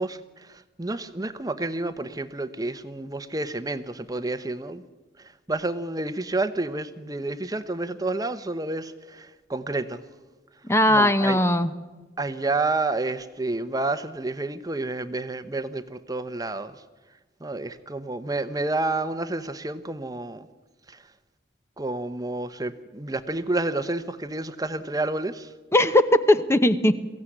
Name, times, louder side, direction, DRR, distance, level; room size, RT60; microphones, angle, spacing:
voice 1, 0.0-4.8 5.5-10.0 10.9-11.4 12.2-16.7 17.4-20.5 20.9-21.0 21.8-25.5, right 2 dB, 20° right, 11 dB, 0.9 m, -29 dB
voice 2, 10.7-11.7 25.7-26.9, left 1 dB, 15° left, 11 dB, 0.9 m, -19 dB
23.0 x 16.0 x 9.9 m, 1.3 s
head